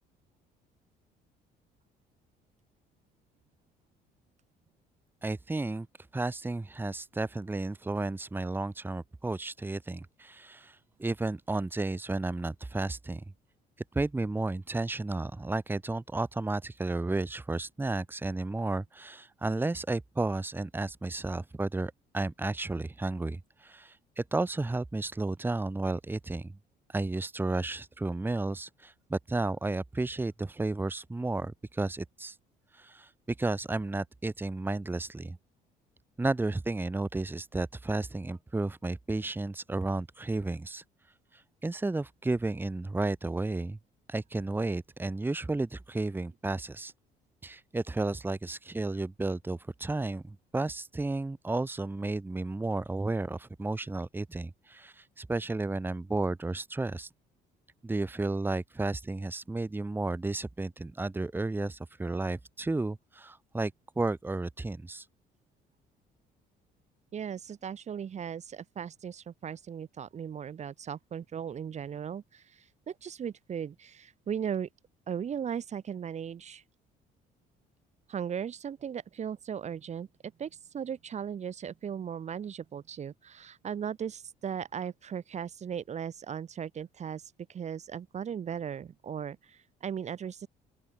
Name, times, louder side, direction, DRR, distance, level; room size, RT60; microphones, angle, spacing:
voice 1, 5.2-5.9 6.1-13.2 13.9-26.6 26.9-32.4 32.7-33.1 33.4-35.4 36.2-40.8 41.3-43.8 44.1-46.9 47.4-57.1 57.8-65.1, right 2 dB, 10° right, 1.8 m, -33 dB
voice 2, 67.1-74.7 75.1-76.6 78.1-80.1 80.4-90.5, right 8 dB, 40° right, 1.9 m, -37 dB
open air
cardioid pair, 110°, 17 cm